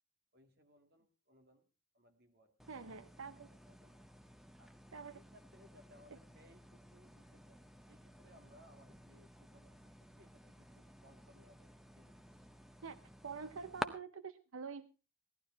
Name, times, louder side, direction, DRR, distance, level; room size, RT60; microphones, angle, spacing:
voice 1, 0.3-1.7 1.9-3.0 3.4-4.0 4.6-4.7 5.1-9.9 10.2-12.4, equal, 50° right, 5 dB, 2.3 m, -66 dB
sound 1, 2.6-13.9, equal, ahead, 0.7 m, -52 dB
voice 2, 2.7-3.5 4.9-5.2 12.8-14.9, right 5 dB, 85° right, 13 dB, 0.7 m, -47 dB
17.0 x 12.0 x 4.5 m, 0.32 s
head